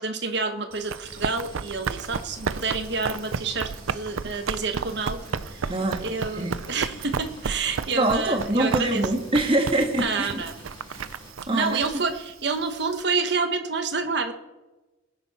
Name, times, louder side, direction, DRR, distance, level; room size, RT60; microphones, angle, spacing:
voice 1, 0.0-5.7 6.0-9.0 10.0-10.5 11.5-14.3, right 4 dB, 55° right, 7 dB, 1.2 m, -28 dB
Run, 0.7-13.0, right 5 dB, 85° right, 0.5 m, -33 dB
sound 1, 1.0-11.3, left 1 dB, 25° left, 4.7 m, -46 dB
voice 2, 5.7-6.0 6.4-6.6 7.9-10.4 10.9-11.0 11.5-11.8, right 1 dB, 25° right, 4 dB, 1.6 m, -24 dB
20.5 x 9.7 x 4.3 m, 1.1 s
head